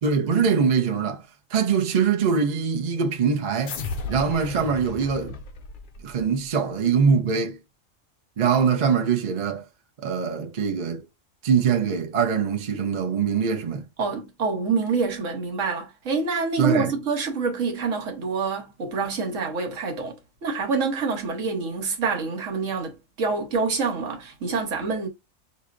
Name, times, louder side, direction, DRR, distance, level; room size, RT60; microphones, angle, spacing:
voice 1, 0.0-1.2 1.5-3.8 4.1-5.4 6.0-7.6 8.4-9.6 10.0-11.0 11.4-13.8 16.6-16.9, right 6 dB, 45° right, 0.6 m, -23 dB
sound 1, 3.6-6.4, left 4 dB, 60° left, 0.5 m, -35 dB
voice 2, 14.0-20.2 20.4-25.1, right 4 dB, 70° right, 1.4 m, -26 dB
6.1 x 2.7 x 2.5 m
omnidirectional pair, 1.4 m